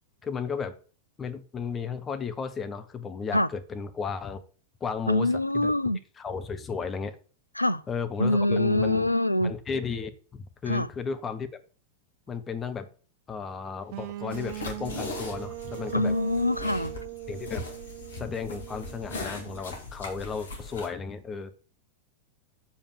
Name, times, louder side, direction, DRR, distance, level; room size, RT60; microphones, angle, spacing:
voice 1, 0.2-0.8 1.2-4.4 4.8-5.7 6.2-7.2 7.9-9.1 9.4-11.5 12.3-12.9 13.3-16.2 17.3-17.6 18.1-21.5, left 5 dB, 20° left, 1.1 m, -34 dB
voice 2, 5.1-6.0 7.6-7.8 8.2-9.5 10.7-10.9 15.9-16.9, left 1 dB, 85° left, 0.4 m, -24 dB
sound 1, 13.9-19.8, right 17 dB, 50° right, 0.4 m, -40 dB
sound 2, 14.3-20.9, left 3 dB, 65° left, 2.2 m, -40 dB
7.1 x 5.4 x 6.9 m
figure-of-eight pair, 90°, 0 cm